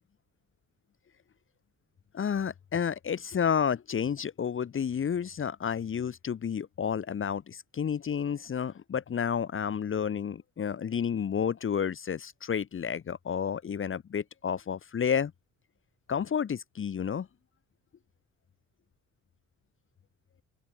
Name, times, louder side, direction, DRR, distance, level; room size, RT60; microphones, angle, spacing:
voice 1, 2.1-15.3 16.1-17.3, left 7 dB, 45° left, 1.4 m, -31 dB
open air
cardioid pair, 90°, 30 cm